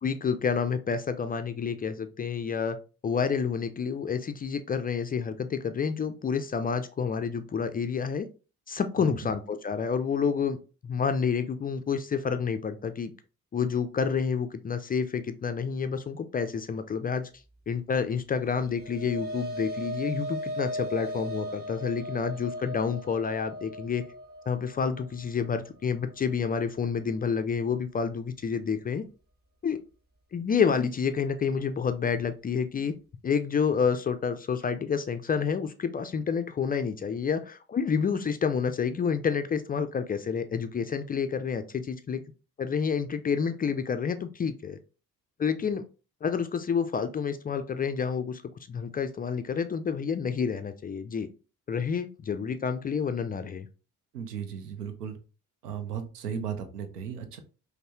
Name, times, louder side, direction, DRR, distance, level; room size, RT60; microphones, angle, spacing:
voice 1, 0.0-2.8 3.0-8.3 8.7-10.6 10.8-13.1 13.5-17.3 17.7-24.0 24.5-29.0 29.6-29.8 30.3-32.9 33.2-42.2 42.6-44.8 45.4-45.8 46.2-48.4 48.7-51.3 51.7-53.7, left 6 dB, 20° left, 9 dB, 0.3 m, -29 dB
sound 1, 18.4-27.0, equal, 20° right, 1.1 m, -38 dB
voice 2, 54.1-55.2 55.6-57.4, right 7 dB, 90° right, 8 dB, 0.6 m, -36 dB
5.3 x 2.1 x 2.8 m, 0.34 s
figure-of-eight pair, 45°, 46 cm